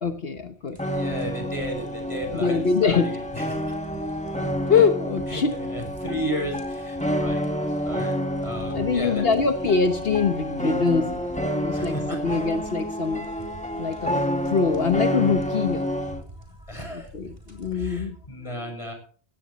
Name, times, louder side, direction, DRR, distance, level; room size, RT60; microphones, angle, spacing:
voice 1, 0.0-0.8 2.3-3.1 4.7-5.5 8.7-12.0 12.2-13.3 13.8-15.9 16.9-18.2 18.6-18.7, left 5 dB, 65° left, 7 dB, 1.3 m, -24 dB
voice 2, 0.7-3.6 5.3-9.2 11.7-12.2 16.7-17.1 17.7-18.9, equal, 30° left, 3 dB, 6.6 m, -34 dB
sound 1, 0.8-16.2, equal, 5° left, 1.7 m, -29 dB
sound 2, 0.8-17.7, equal, 30° right, 4.0 m, -46 dB
17.0 x 16.0 x 3.1 m, 0.42 s
omnidirectional pair, 1.1 m